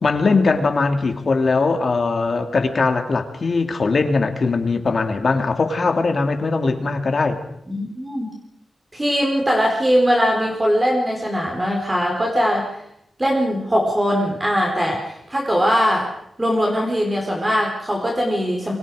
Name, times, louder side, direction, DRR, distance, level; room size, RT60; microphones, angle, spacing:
voice 1, 0.0-7.4, left 3 dB, 45° left, 6 dB, 2.7 m, -20 dB
voice 2, 7.7-8.3 8.9-12.8 13.2-16.1 16.4-18.7, equal, 15° right, -1 dB, 4.4 m, -20 dB
28.5 x 24.0 x 5.0 m, 0.74 s
wide cardioid pair, 145°, 0 cm